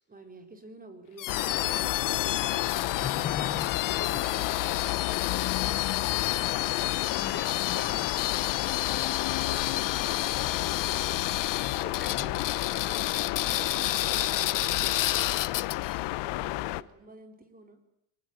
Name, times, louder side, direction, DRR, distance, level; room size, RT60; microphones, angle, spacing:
voice 1, 0.1-2.8 4.1-6.1 9.4-11.0 12.2-13.2 13.4-15.5 16.2-17.8, right 2 dB, 20° right, 7 dB, 4.8 m, -51 dB
sound 1, 1.2-16.0, left 14 dB, 50° left, 1.0 m, -31 dB
sound 2, 1.3-16.8, left 19 dB, 75° left, 1.1 m, -31 dB
voice 2, 3.0-4.2 7.1-8.0 11.7-12.3 16.1-16.5, left 5 dB, 25° left, 8 dB, 4.0 m, -39 dB
24.0 x 19.5 x 9.7 m, 0.74 s
cardioid pair, 120°, 41 cm